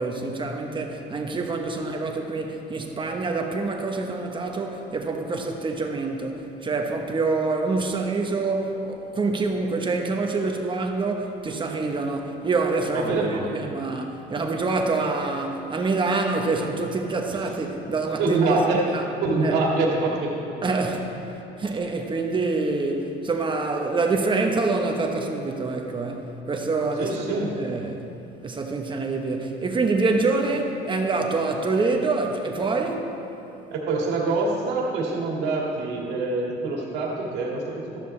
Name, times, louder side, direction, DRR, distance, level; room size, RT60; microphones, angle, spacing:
voice 1, 0.0-19.0 19.4-19.6 20.6-21.2 21.6-28.1 28.4-33.1, right 3 dB, 30° right, 3 dB, 1.1 m, -26 dB
voice 2, 12.9-13.5 18.2-18.8 19.2-20.3 27.0-27.5 33.7-38.0, right 3 dB, 85° right, -2 dB, 2.2 m, -25 dB
13.0 x 12.0 x 3.3 m, 3.0 s
cardioid pair, 110°, 17 cm